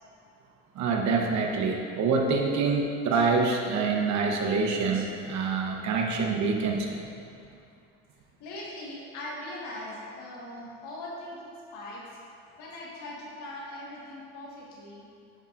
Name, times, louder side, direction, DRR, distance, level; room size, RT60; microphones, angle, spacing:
voice 1, 0.7-6.9, right 4 dB, 70° right, 1 dB, 1.0 m, -26 dB
voice 2, 8.4-12.2 12.6-15.0, left 1 dB, 90° left, -4 dB, 1.6 m, -40 dB
10.0 x 5.6 x 2.5 m, 2.5 s
cardioid pair, 100°, 30 cm